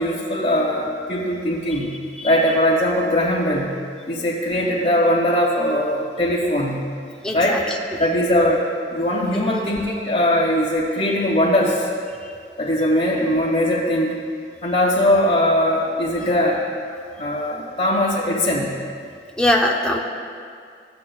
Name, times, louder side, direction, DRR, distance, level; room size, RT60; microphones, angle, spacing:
voice 1, 0.0-1.9 2.2-3.7 4.1-6.8 7.3-7.6 8.0-8.6 8.9-11.9 12.6-14.1 14.6-16.6 17.2-18.7, left 1 dB, 35° left, -7 dB, 1.9 m, -20 dB
voice 2, 7.2-7.8 9.4-9.6 12.2-12.3 19.4-20.0, left 1 dB, 5° left, -1 dB, 0.7 m, -22 dB
15.0 x 8.3 x 2.3 m, 2.3 s
head